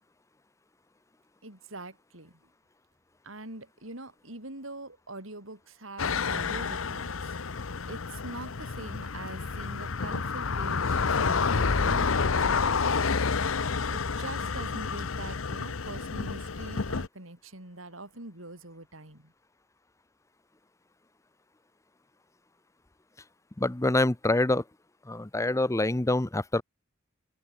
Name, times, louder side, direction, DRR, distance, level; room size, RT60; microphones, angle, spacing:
voice 1, 1.4-2.4 3.2-7.4 7.9-13.2 13.9-19.3, right 2 dB, 85° right, 6.2 m, -43 dB
sound 1, 6.0-17.1, left 5 dB, 85° left, 0.9 m, -29 dB
voice 2, 23.6-24.6 25.0-26.6, left 2 dB, 15° left, 0.7 m, -26 dB
open air
head